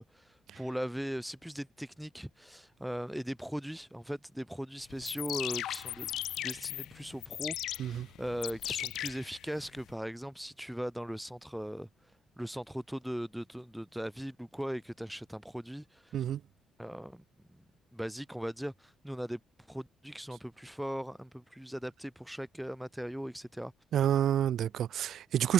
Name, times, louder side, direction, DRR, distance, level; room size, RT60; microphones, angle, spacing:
voice 1, 0.0-11.9 12.4-16.2 16.8-17.2 17.5-17.6 17.9-19.4 19.7-23.7, equal, ahead, 4.1 m, -39 dB
sound 1, 4.9-9.9, left 12 dB, 75° left, 3.4 m, -38 dB
voice 2, 23.9-25.5, right 10 dB, 60° right, 0.6 m, -28 dB
cardioid pair, 145°, 0 cm